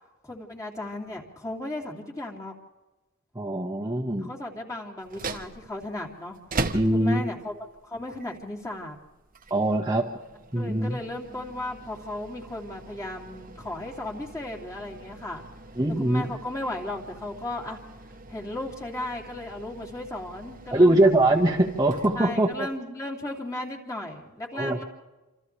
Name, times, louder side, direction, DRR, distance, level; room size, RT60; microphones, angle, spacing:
voice 1, 0.2-2.5 4.2-6.4 6.9-7.5 7.8-9.0 10.5-15.4 16.0-17.8 18.3-21.1 22.1-24.8, left 1 dB, 15° left, -2 dB, 3.1 m, -35 dB
voice 2, 3.3-4.3 6.7-7.3 9.5-10.1 10.5-11.1 15.8-16.3 20.7-22.5 24.5-24.8, right 1 dB, 15° right, -1 dB, 1.6 m, -22 dB
sound 1, 5.0-22.8, right 2 dB, 40° right, 1.3 m, -41 dB
27.5 x 27.5 x 3.4 m, 1.1 s
head